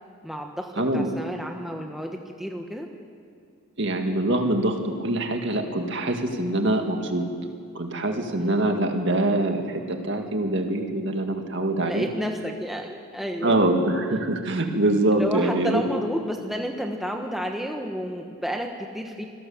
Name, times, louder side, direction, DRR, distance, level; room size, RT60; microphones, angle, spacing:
voice 1, 0.2-2.9 8.4-8.6 11.8-13.6 15.1-19.2, equal, ahead, 2 dB, 1.2 m, -31 dB
voice 2, 0.8-1.1 3.8-7.3 7.7-12.1 13.4-15.8, right 1 dB, 55° right, 4 dB, 2.0 m, -24 dB
25.5 x 16.5 x 7.2 m, 2.2 s
head